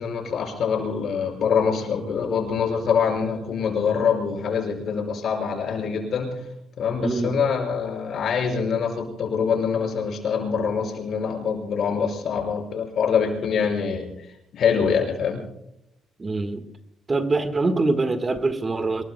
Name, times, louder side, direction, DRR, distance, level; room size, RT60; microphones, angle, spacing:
voice 1, 0.0-6.3 6.8-14.1 14.5-15.4, left 6 dB, 65° left, 3 dB, 5.4 m, -24 dB
voice 2, 7.0-7.4 16.2-16.6 17.1-19.0, right 3 dB, 30° right, 9 dB, 1.5 m, -24 dB
26.5 x 21.0 x 2.2 m, 0.78 s
cardioid pair, 90°, 0 cm